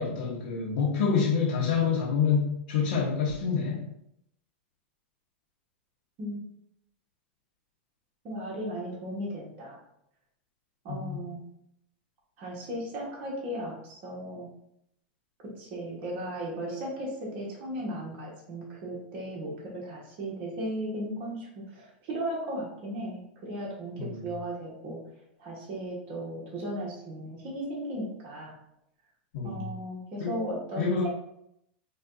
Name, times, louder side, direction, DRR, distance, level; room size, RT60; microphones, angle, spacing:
voice 1, 0.0-3.9 10.9-11.2 24.0-24.2 29.3-29.7 30.2-30.4 30.8-31.1, left 6 dB, 65° left, -4 dB, 0.8 m, -27 dB
voice 2, 8.2-9.8 10.8-11.5 12.4-14.5 15.4-25.0 25.4-28.5 29.4-31.1, right 1 dB, 50° right, -4 dB, 1.2 m, -36 dB
4.7 x 2.3 x 2.5 m, 0.77 s
hypercardioid pair, 110°, 6 cm